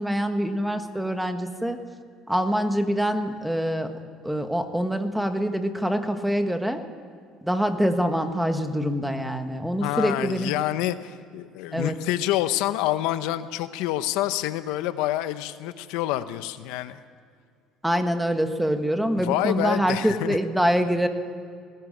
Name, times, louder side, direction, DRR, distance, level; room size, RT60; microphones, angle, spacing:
voice 1, 0.0-1.8 2.3-3.9 4.2-6.8 7.4-10.5 11.7-11.9 17.8-21.1, equal, 5° right, 7 dB, 1.6 m, -25 dB
voice 2, 9.8-17.0 19.2-20.4, left 14 dB, 85° left, 12 dB, 0.9 m, -27 dB
18.5 x 16.0 x 8.9 m, 2.2 s
cardioid pair, 115°, 0 cm